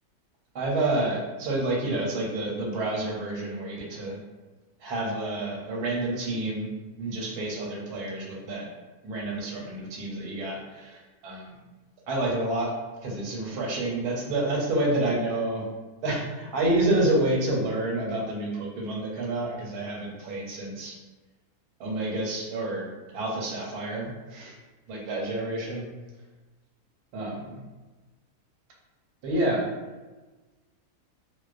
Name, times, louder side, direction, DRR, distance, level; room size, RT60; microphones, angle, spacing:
voice 1, 0.5-4.2 4.8-6.7 7.0-8.7 9.0-11.5 12.1-12.7 13.0-15.7 16.0-20.9 21.8-22.9 23.1-24.5 24.9-25.9 27.1-27.6 29.2-29.7, right 2 dB, 80° right, -2 dB, 1.2 m, -29 dB
2.5 x 2.1 x 2.3 m, 1.2 s
omnidirectional pair, 1.6 m